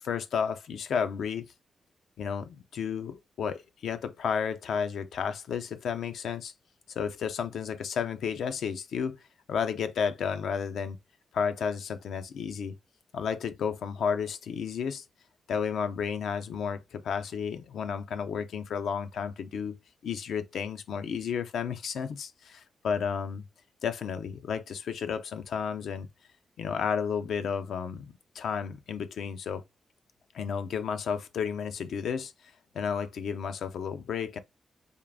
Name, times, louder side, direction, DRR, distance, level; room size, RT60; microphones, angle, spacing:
voice 1, 0.0-1.5 2.2-6.5 7.0-9.2 9.5-11.0 11.3-12.8 13.1-15.0 15.5-23.5 23.8-26.1 26.6-29.6 30.3-34.4, left 7 dB, 85° left, 0.5 m, -32 dB
3.6 x 2.4 x 3.4 m
cardioid pair, 100°, 0 cm